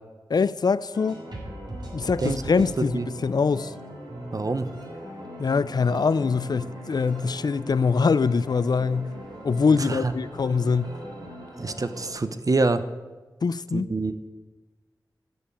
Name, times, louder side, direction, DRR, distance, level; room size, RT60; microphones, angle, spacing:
voice 1, 0.3-1.2 1.9-3.7 5.4-9.1 9.4-11.0 13.4-13.9, left 5 dB, 60° left, 0.4 m, -23 dB
sound 1, 0.9-12.1, equal, 70° right, 3.1 m, -40 dB
voice 2, 4.3-4.7 9.7-10.1 11.6-12.8 13.7-14.3, right 3 dB, 50° right, 0.8 m, -26 dB
10.0 x 7.1 x 8.7 m
cardioid pair, 45°, 8 cm